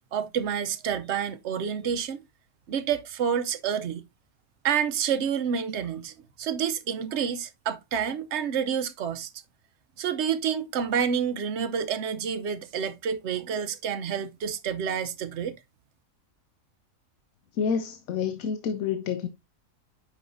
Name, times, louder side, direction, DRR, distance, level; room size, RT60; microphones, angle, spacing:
voice 1, 0.1-2.2 2.7-4.1 4.6-9.3 10.0-15.5, right 7 dB, 60° right, 1.0 m, -29 dB
voice 2, 17.6-19.3, left 7 dB, 85° left, 1.1 m, -28 dB
8.5 x 5.5 x 2.6 m
omnidirectional pair, 1.4 m